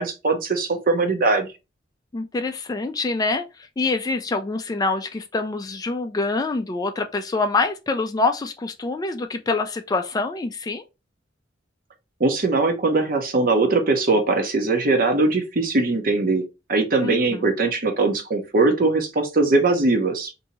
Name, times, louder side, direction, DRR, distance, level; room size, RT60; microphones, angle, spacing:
voice 1, 0.0-1.5 12.2-16.4 16.7-20.3, right 3 dB, 50° right, 0.8 m, -21 dB
voice 2, 2.1-10.8 17.0-17.5, left 3 dB, 20° left, 0.3 m, -25 dB
2.7 x 2.7 x 4.0 m
head